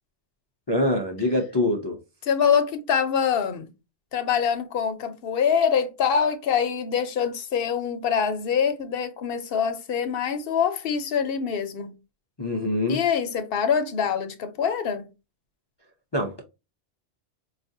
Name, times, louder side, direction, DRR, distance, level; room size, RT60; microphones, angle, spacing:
voice 1, 0.7-2.0 12.4-13.0 16.1-16.4, left 1 dB, 40° left, 0.4 m, -24 dB
voice 2, 2.2-3.7 4.1-11.9 12.9-15.0, left 7 dB, 60° left, 0.8 m, -24 dB
4.7 x 2.4 x 2.6 m
omnidirectional pair, 1.2 m